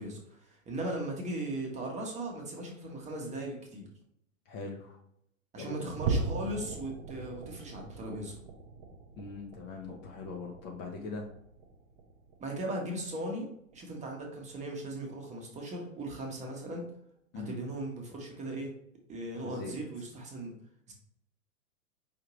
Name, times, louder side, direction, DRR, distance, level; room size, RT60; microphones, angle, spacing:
voice 1, 0.0-3.9 5.5-8.3 12.4-13.5 13.7-16.9 17.3-18.7 19.1-20.5 20.9-21.0, right 1 dB, 15° right, 1 dB, 0.9 m, -38 dB
voice 2, 4.5-5.0 5.6-5.9 9.2-11.3 17.3-17.6 19.4-19.7, left 4 dB, 30° left, 1 dB, 0.6 m, -41 dB
sound 1, 6.0-12.6 13.0-13.3 13.7-13.8 14.4-14.5, right 4 dB, 35° right, 0.6 m, -39 dB
5.1 x 2.7 x 3.0 m, 0.73 s
figure-of-eight pair, 95°, 40 cm